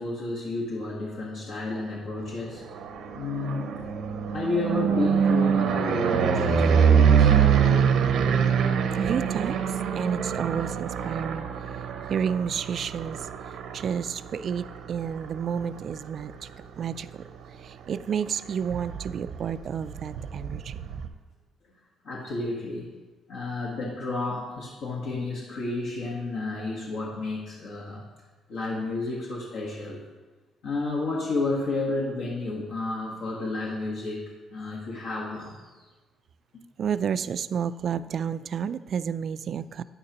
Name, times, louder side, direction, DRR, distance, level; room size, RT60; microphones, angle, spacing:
voice 1, 0.0-2.6 3.1-3.7 4.3-7.8 22.0-22.9 23.3-28.0 28.5-30.0 30.6-35.9, left 2 dB, 75° left, -4 dB, 1.4 m, -31 dB
sound 1, 2.4-16.4 16.9-17.4 17.6-17.7 18.0-21.1, right 7 dB, 75° right, 0.7 m, -25 dB
voice 2, 8.9-11.5 12.1-13.3 13.7-16.5 16.8-17.2 17.6-20.9 36.8-39.8, right 7 dB, 50° right, 13 dB, 0.3 m, -30 dB
9.5 x 9.3 x 2.9 m, 1.3 s
cardioid pair, 120°, 0 cm